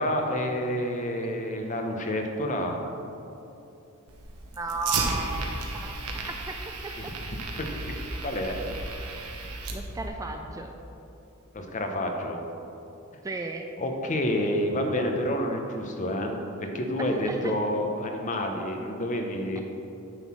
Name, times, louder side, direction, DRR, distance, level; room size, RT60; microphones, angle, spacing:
voice 1, 0.0-2.8 7.0-7.1 7.6-7.9 8.2-8.5 11.5-12.4 13.8-19.6, left 1 dB, 35° left, 3 dB, 0.8 m, -29 dB
Fire, 4.1-10.1, right 3 dB, 80° right, 1.0 m, -34 dB
voice 2, 4.6-5.5 5.7-6.0 6.3-7.1 9.7-10.7 13.2-13.7 17.3-17.5, right 3 dB, 15° right, 3 dB, 0.3 m, -34 dB
9.9 x 3.8 x 6.1 m, 2.8 s
head